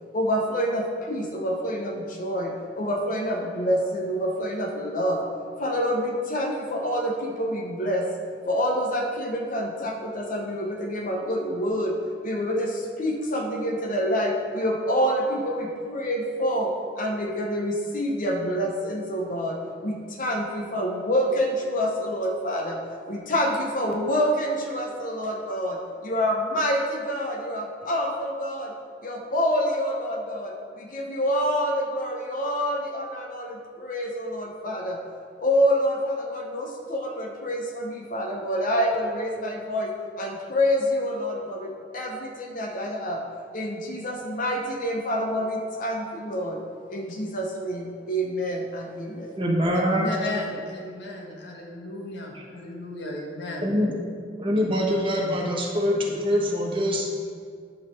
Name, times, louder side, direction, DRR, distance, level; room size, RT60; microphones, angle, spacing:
voice 1, 0.1-5.2 5.6-8.1 8.5-12.0 12.2-16.7 17.0-22.8 23.1-28.7 29.0-35.0 35.4-39.9 40.2-43.2 43.5-46.6 46.9-49.3, equal, 45° left, 1 dB, 0.8 m, -27 dB
voice 2, 49.4-50.0 53.6-53.9 54.4-57.1, equal, 30° right, -1 dB, 1.3 m, -24 dB
voice 3, 49.9-53.7 55.1-55.4, left 2 dB, 65° left, -1 dB, 1.6 m, -35 dB
11.0 x 3.9 x 6.6 m, 2.2 s
head